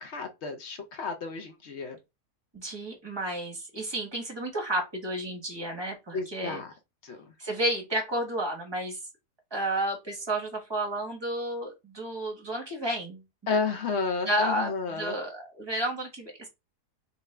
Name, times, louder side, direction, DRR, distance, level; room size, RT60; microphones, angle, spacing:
voice 1, 0.0-2.0 6.1-6.7 7.0-7.3 13.5-15.2, left 4 dB, 55° left, 0.8 m, -32 dB
voice 2, 2.5-6.6 7.4-9.0 9.5-13.2 14.3-16.5, right 1 dB, 20° right, 1.0 m, -31 dB
4.1 x 2.6 x 3.2 m
omnidirectional pair, 1.7 m